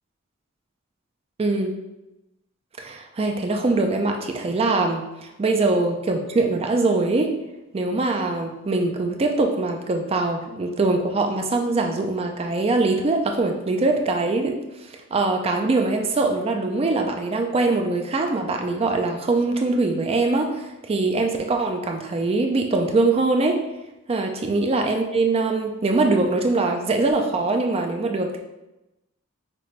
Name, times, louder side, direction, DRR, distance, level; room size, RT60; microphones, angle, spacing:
voice 1, 1.4-1.7 2.8-7.4 7.7-23.6 24.1-28.4, right 3 dB, 30° right, 4 dB, 0.4 m, -22 dB
5.8 x 2.6 x 3.1 m, 0.96 s
head